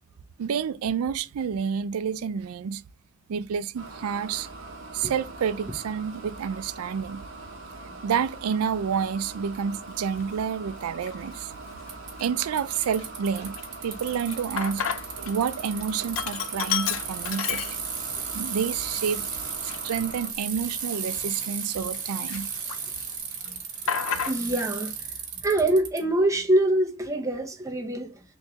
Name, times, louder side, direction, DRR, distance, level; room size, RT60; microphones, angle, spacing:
voice 1, 0.4-2.8 3.3-4.5 4.9-7.2 8.0-11.5 12.2-13.6 13.8-14.8 15.2-17.8 18.2-19.2 19.6-22.5, right 7 dB, 90° right, 0.4 m, -29 dB
sound 1, 3.8-20.3, right 3 dB, 60° right, 0.8 m, -42 dB
Sink (filling or washing), 10.0-10.2 10.9-11.4 11.8-11.9 12.2-15.3 15.6-18.2 18.6-18.7 19.4-22.0 22.3-23.0 23.3-24.7, left 8 dB, 65° left, 0.4 m, -32 dB
Bicycle, 11.9-26.0, right 6 dB, 35° right, 1.0 m, -35 dB
voice 2, 24.2-25.1 25.4-28.2, right 1 dB, 15° right, 0.6 m, -25 dB
3.5 x 3.1 x 2.7 m
head